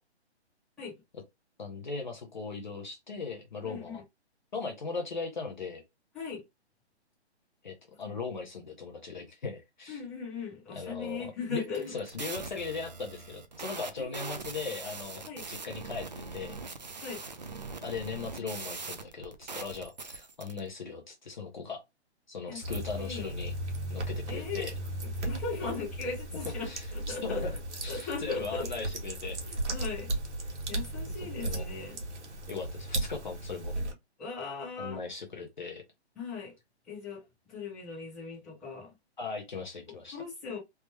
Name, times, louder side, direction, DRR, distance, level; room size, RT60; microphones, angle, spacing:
voice 1, 1.6-4.0 4.5-5.8 7.6-10.0 10.7-16.1 16.3-16.6 17.8-21.8 22.3-23.5 23.9-24.7 25.6-25.7 26.6-27.5 27.8-29.4 31.1-31.2 31.4-31.6 32.5-33.7 34.8-35.8 39.2-40.2, left 4 dB, 45° left, 0.6 m, -38 dB
voice 2, 3.6-4.0 6.1-6.4 8.0-8.2 9.9-12.0 14.0-14.4 15.3-15.4 17.0-17.2 22.5-23.3 24.3-24.7 25.2-27.6 27.9-28.7 29.4-30.1 30.7-32.0 34.2-35.0 36.1-36.5 36.9-37.2 37.5-38.9 40.1-40.6, left 4 dB, ahead, 1.0 m, -38 dB
sound 1, 11.6-20.6, right 4 dB, 40° right, 0.4 m, -42 dB
sound 2, 22.6-33.9, right 1 dB, 85° right, 1.3 m, -36 dB
3.4 x 2.0 x 3.1 m
hypercardioid pair, 175°, 34 cm